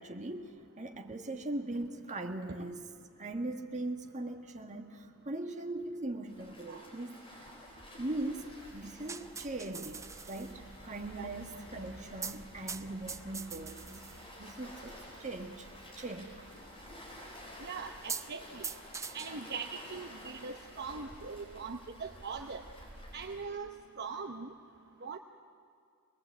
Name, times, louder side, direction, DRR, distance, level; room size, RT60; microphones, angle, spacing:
voice 1, 0.0-7.5 7.9-14.1 14.4-15.7 16.0-16.3, right 2 dB, 35° right, 4 dB, 1.6 m, -40 dB
Waves surf, 6.2-23.4, left 1 dB, 25° left, 5.0 m, -52 dB
sound 1, 8.6-21.0, right 5 dB, 15° right, 0.5 m, -47 dB
voice 2, 17.6-18.7 19.1-22.6 23.1-23.7 24.0-24.5 25.0-25.2, right 5 dB, 50° right, 4 dB, 0.9 m, -41 dB
25.0 x 20.0 x 8.3 m, 2.3 s
head